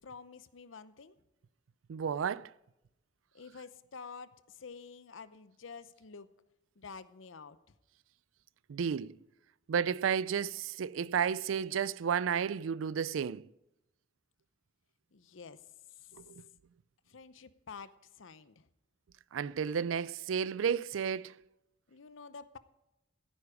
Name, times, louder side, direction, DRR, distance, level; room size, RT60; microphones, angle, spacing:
voice 1, 0.0-1.2 3.3-6.3 6.8-7.7 15.1-15.7 17.1-18.7 21.9-22.6, left 5 dB, 80° left, 0.7 m, -49 dB
voice 2, 1.9-2.5 8.7-9.2 9.7-13.5 16.1-16.5 19.3-21.3, right 7 dB, 90° right, 0.4 m, -32 dB
14.5 x 9.5 x 4.9 m
head